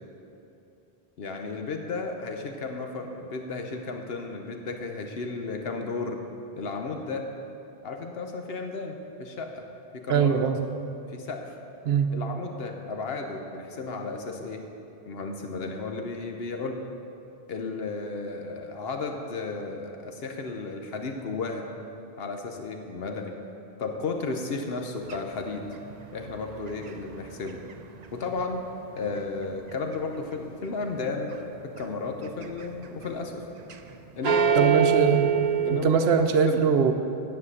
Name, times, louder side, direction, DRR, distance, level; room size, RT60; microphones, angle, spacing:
voice 1, 1.2-6.2 6.6-7.3 7.8-9.7 9.9-10.4 11.1-11.5 12.1-14.6 15.1-16.8 17.5-21.7 22.2-23.4 23.8-25.7 26.1-27.6 28.1-28.6 28.9-31.3 31.6-33.4 34.2-34.7 35.7-36.6, left 3 dB, 70° left, 4 dB, 1.0 m, -33 dB
voice 2, 10.1-10.6 11.8-12.1 34.6-35.3 35.7-36.9, right 6 dB, 80° right, 7 dB, 0.9 m, -22 dB
sound 1, 25.0-29.2 29.5-30.3 30.8-31.4 31.7-33.9 34.2-35.8, right 8 dB, 50° right, 0.5 m, -26 dB
9.9 x 7.6 x 6.5 m, 2.8 s
omnidirectional pair, 1.1 m